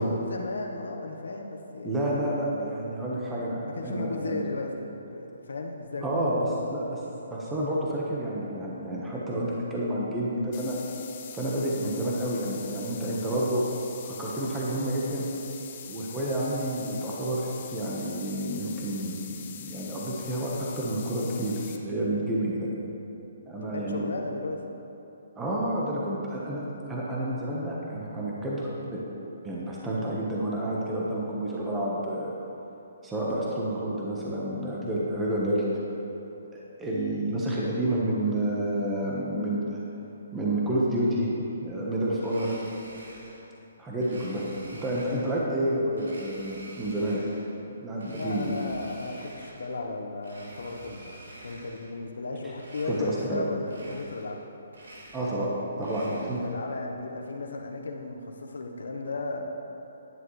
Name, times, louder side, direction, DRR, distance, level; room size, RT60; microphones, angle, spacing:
voice 1, 0.0-2.0 3.8-7.0 23.6-24.6 48.1-54.4 56.0-59.5, left 3 dB, 85° left, 2 dB, 1.0 m, -35 dB
voice 2, 1.8-4.4 6.0-7.0 7.3-10.8 11.3-13.6 14.0-15.3 15.8-22.7 23.5-24.0 25.4-29.0 29.4-32.3 33.0-35.6 36.5-39.8 40.3-41.3 41.6-42.6 43.8-44.4 44.7-47.2 47.8-48.5 52.8-53.4 55.1-55.5 55.8-56.4, right 1 dB, 10° right, -6 dB, 1.2 m, -29 dB
sound 1, 10.5-21.8, left 8 dB, 40° left, 0.8 m, -43 dB
Domestic sounds home sounds, 42.2-43.5 44.0-45.4 45.9-47.5 48.0-49.8 50.2-51.9 52.5-53.4 53.6-54.4 54.7-56.6, right 1 dB, 85° right, 2.3 m, -48 dB
11.5 x 10.0 x 3.2 m, 2.9 s
hypercardioid pair, 160°, 0 cm